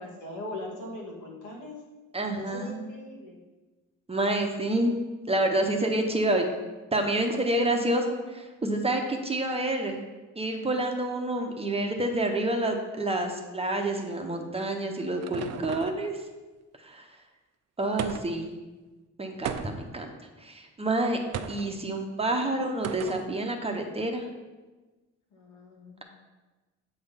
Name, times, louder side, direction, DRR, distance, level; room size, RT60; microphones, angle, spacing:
voice 1, 0.0-1.8 2.3-3.4 15.7-16.0 25.3-26.0, left 2 dB, 80° left, -3 dB, 2.1 m, -40 dB
voice 2, 2.1-2.9 4.1-4.9 5.3-6.4 6.9-10.0 10.4-16.2 16.8-17.1 17.8-18.5 19.2-20.1 20.4-21.2 21.5-24.2, right 1 dB, 20° right, 3 dB, 0.9 m, -28 dB
sound 1, 14.5-16.1 18.0-18.5 19.4-20.0 21.3-21.7 22.8-23.3, right 8 dB, 55° right, 0.5 m, -36 dB
7.9 x 3.4 x 5.7 m, 1.2 s
cardioid pair, 90°, 30 cm